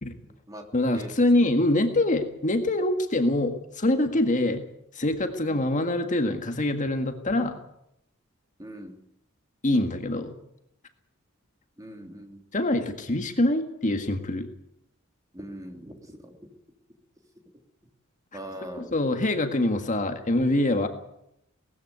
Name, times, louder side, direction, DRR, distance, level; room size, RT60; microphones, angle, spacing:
voice 1, 0.7-4.6 4.9-7.5 9.6-10.4 12.5-14.5 18.8-20.9, left 1 dB, 35° left, 6 dB, 1.7 m, -24 dB
voice 2, 8.6-9.0 11.8-12.4 15.3-16.3 18.3-18.9, equal, 15° right, 3 dB, 3.1 m, -41 dB
19.5 x 14.0 x 9.5 m, 0.79 s
head